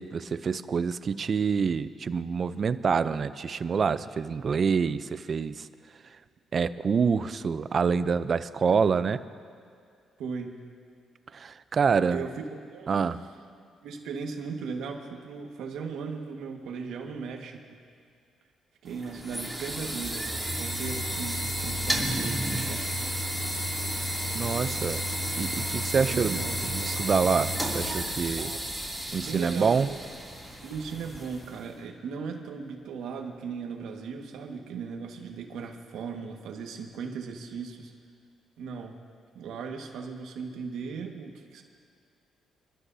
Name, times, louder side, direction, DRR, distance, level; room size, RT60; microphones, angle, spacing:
voice 1, 0.0-5.7 6.5-9.2 11.3-12.2 12.9-13.2 24.3-25.0 25.4-28.5 29.1-29.9, right 5 dB, 45° right, 13 dB, 0.5 m, -26 dB
voice 2, 10.2-10.6 12.1-13.1 13.8-17.8 18.8-23.2 25.9-26.6 28.4-28.6 29.2-30.0 30.6-37.9 38.6-39.0 39.3-41.6, right 5 dB, 80° right, 2 dB, 1.6 m, -37 dB
sound 1, 18.9-31.7, equal, ahead, 2.7 m, -32 dB
29.0 x 12.5 x 2.8 m, 2.2 s
cardioid pair, 90°, 0 cm